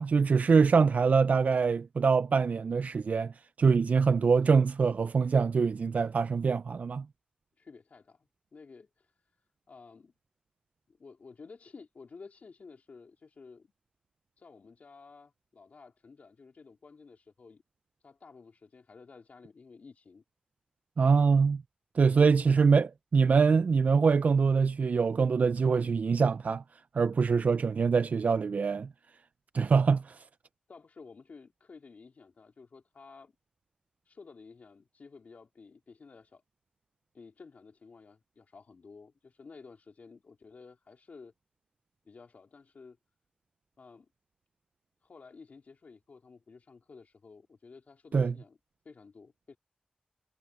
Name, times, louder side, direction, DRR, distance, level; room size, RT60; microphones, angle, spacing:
voice 1, 0.0-3.3 3.6-7.0 21.0-21.6 22.0-22.9 23.1-26.6 26.9-28.9 29.5-30.2 48.1-48.3, right 5 dB, 65° right, 0.3 m, -24 dB
voice 2, 7.6-9.1 9.7-10.1 10.9-13.7 14.4-17.6 18.0-20.2 22.1-22.7 30.7-33.3 34.0-36.4 37.1-41.3 42.0-43.0 43.8-44.1 45.0-48.6 48.8-49.6, left 4 dB, 70° left, 2.8 m, -52 dB
wide cardioid pair, 110°, 3 cm